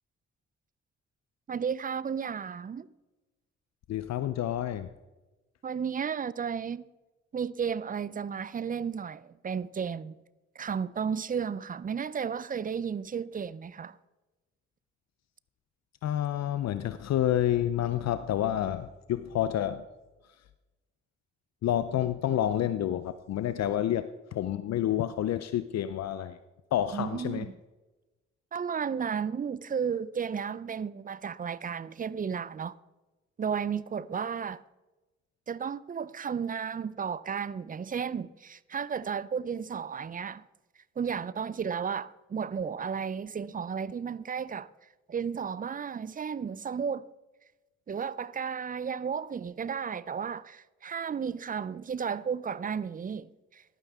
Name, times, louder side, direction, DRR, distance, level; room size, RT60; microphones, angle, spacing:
voice 1, 1.5-2.9 5.6-6.8 7.3-10.2 10.6-14.0 26.9-27.5 28.5-32.7 33.4-34.6 35.5-40.4 41.0-44.7 45.1-47.1 47.9-53.6, right 7 dB, 30° right, 0.4 m, -33 dB
voice 2, 3.9-4.9 16.0-19.9 20.2-20.5 21.6-26.4 26.7-27.5, left 11 dB, 65° left, 0.5 m, -29 dB
12.0 x 9.0 x 3.5 m
supercardioid pair, 55°, 29 cm